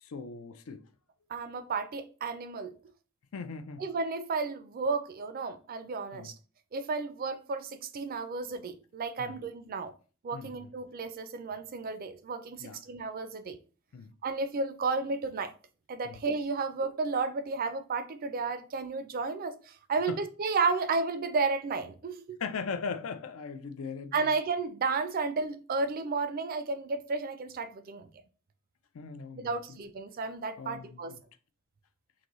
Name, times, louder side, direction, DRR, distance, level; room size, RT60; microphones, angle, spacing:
voice 1, 0.0-0.8 3.3-3.8 6.1-6.3 9.2-9.3 10.3-10.5 12.6-12.8 13.9-14.1 16.0-16.2 20.1-20.2 22.4-24.3 28.9-29.6 30.6-31.2, left 5 dB, 80° left, 0.4 m, -39 dB
voice 2, 1.3-2.8 3.8-6.3 6.7-9.9 10.2-13.6 14.2-15.5 15.9-22.4 24.1-28.1 29.4-31.1, right 4 dB, 45° right, 0.4 m, -32 dB
3.8 x 2.6 x 3.0 m
head